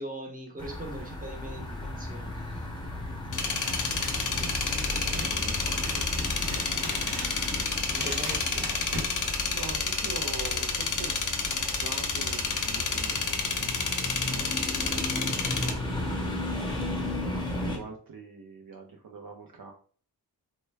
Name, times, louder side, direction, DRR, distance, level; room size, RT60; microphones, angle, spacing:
voice 1, 0.0-2.8 3.3-5.1 7.5-8.7 9.0-9.2 9.6-9.8 17.2-17.5, right 1 dB, 20° right, 0 dB, 0.9 m, -43 dB
sound 1, 0.6-17.8, left 1 dB, 10° left, 0.8 m, -35 dB
sound 2, 3.3-15.7, left 4 dB, 50° left, 0.6 m, -30 dB
Scissors, 3.7-9.9, equal, 80° right, 1.0 m, -41 dB
voice 2, 5.1-6.4 9.4-11.2 11.5-13.1 14.0-16.4 17.6-19.7, right 4 dB, 55° right, 1 dB, 0.6 m, -44 dB
3.3 x 2.1 x 3.3 m, 0.43 s
wide cardioid pair, 80°, 40 cm